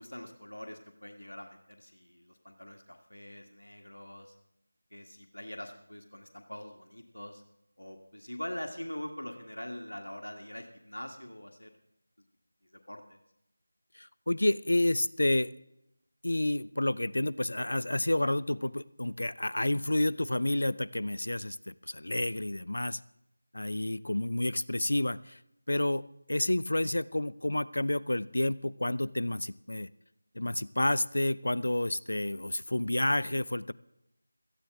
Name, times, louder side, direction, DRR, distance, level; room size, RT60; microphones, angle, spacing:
voice 1, 0.0-4.3 4.9-7.4 7.8-11.7 12.9-13.2, left 1 dB, 90° left, 4 dB, 1.6 m, -43 dB
voice 2, 14.0-15.5 16.2-23.0 23.5-25.4 25.7-26.0 26.3-29.9 30.4-33.7, left 1 dB, 70° left, 18 dB, 0.5 m, -30 dB
17.5 x 14.0 x 3.5 m, 0.82 s
figure-of-eight pair, 170°, 0 cm